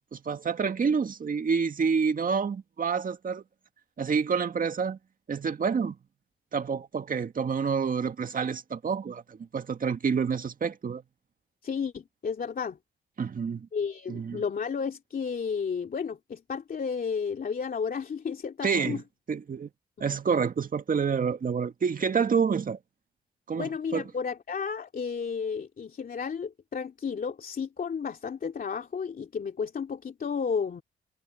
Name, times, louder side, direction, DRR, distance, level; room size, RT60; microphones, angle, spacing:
voice 1, 0.1-3.4 4.0-5.0 5.3-6.0 6.5-11.0 13.2-13.7 14.1-14.4 18.6-19.0 19.3-19.7 20.0-22.8 23.5-24.0, right 6 dB, 50° right, 2.0 m, -28 dB
voice 2, 11.6-12.8 13.7-19.0 23.5-30.8, left 6 dB, 50° left, 2.8 m, -32 dB
supercardioid pair, 60°, 18 cm